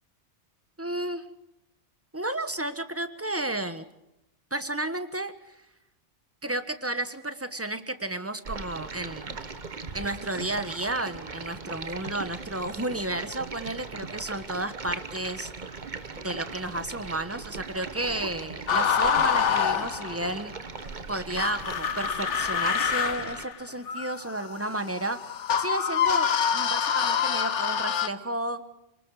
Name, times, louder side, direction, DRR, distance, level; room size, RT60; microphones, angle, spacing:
voice 1, 0.8-1.3 2.1-3.8 4.5-5.6 6.4-9.4 9.9-15.5 16.2-20.5 21.1-25.2 25.6-28.6, right 1 dB, 10° right, 11 dB, 1.3 m, -32 dB
Stream, 8.4-23.4, right 4 dB, 40° right, 1.3 m, -39 dB
Torture screams and moans, 18.7-20.4 21.4-28.1, left 8 dB, 75° left, 1.3 m, -26 dB
28.5 x 20.0 x 5.0 m, 0.89 s
omnidirectional pair, 1.2 m